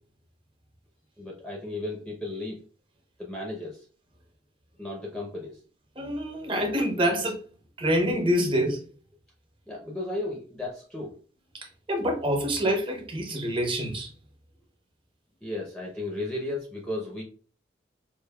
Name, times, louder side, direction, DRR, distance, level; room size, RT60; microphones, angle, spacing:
voice 1, 1.2-2.6 3.2-3.8 4.8-5.6 9.7-11.2 15.4-17.2, left 2 dB, 5° left, 0.6 m, -34 dB
voice 2, 6.0-7.4 7.8-8.8 11.9-14.1, equal, 30° right, 0.9 m, -26 dB
5.0 x 2.5 x 2.2 m
head